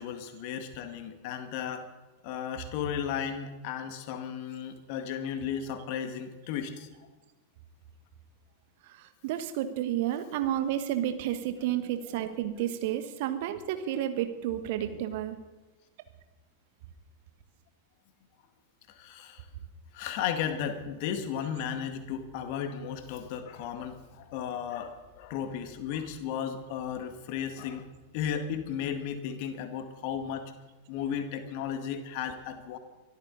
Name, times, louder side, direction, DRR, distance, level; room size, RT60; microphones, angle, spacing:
voice 1, 0.0-1.9 2.2-6.9 19.0-19.5 19.9-27.9 28.1-30.4 30.9-32.8, left 8 dB, 45° left, 8 dB, 2.0 m, -34 dB
voice 2, 9.2-15.4, right 11 dB, 50° right, 9 dB, 1.6 m, -31 dB
24.0 x 13.5 x 4.1 m, 1.2 s
figure-of-eight pair, 90°, 0 cm